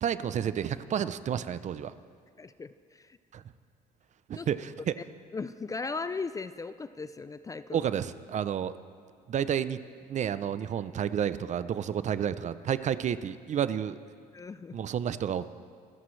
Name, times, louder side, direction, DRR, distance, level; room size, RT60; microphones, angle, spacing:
voice 1, 0.0-1.9 3.3-3.4 4.3-4.9 7.7-8.8 9.3-9.8 10.1-14.0 14.7-15.6, right 9 dB, 45° right, 14 dB, 0.6 m, -30 dB
voice 2, 2.4-3.2 4.3-4.5 5.3-7.8 14.3-14.8, left 4 dB, 20° left, 13 dB, 0.4 m, -37 dB
26.0 x 13.5 x 3.2 m, 2.1 s
cardioid pair, 110°, 17 cm